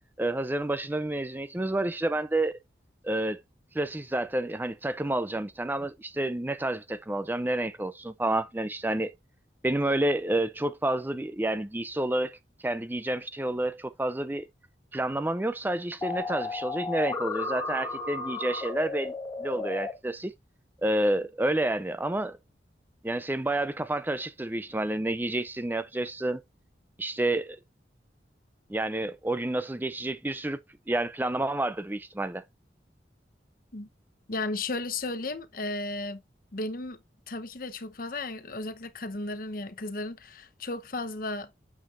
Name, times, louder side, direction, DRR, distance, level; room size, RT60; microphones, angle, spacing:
voice 1, 0.2-2.6 3.0-3.4 3.7-9.1 9.6-12.4 12.6-14.5 14.9-19.1 19.4-20.3 20.8-22.4 23.0-26.4 27.0-27.6 28.7-30.6 30.9-32.4, right 1 dB, 10° right, 0.4 m, -29 dB
sound 1, 16.0-19.9, left 3 dB, 20° left, 2.1 m, -33 dB
voice 2, 34.3-36.2 36.5-37.0 37.3-41.5, left 2 dB, 50° left, 0.9 m, -34 dB
8.8 x 7.1 x 2.5 m
head